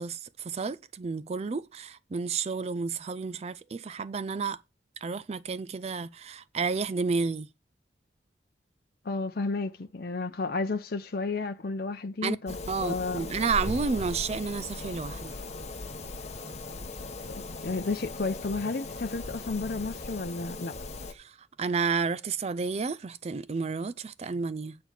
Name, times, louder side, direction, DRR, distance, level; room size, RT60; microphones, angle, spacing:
voice 1, 0.0-4.6 5.0-7.5 12.2-12.4 12.7-15.4 21.1-24.8, right 4 dB, 35° right, 0.4 m, -31 dB
voice 2, 9.0-13.2 17.3-20.7, left 3 dB, 55° left, 0.6 m, -32 dB
sound 1, 12.5-21.1, left 2 dB, 40° left, 1.0 m, -38 dB
9.0 x 4.3 x 7.3 m
head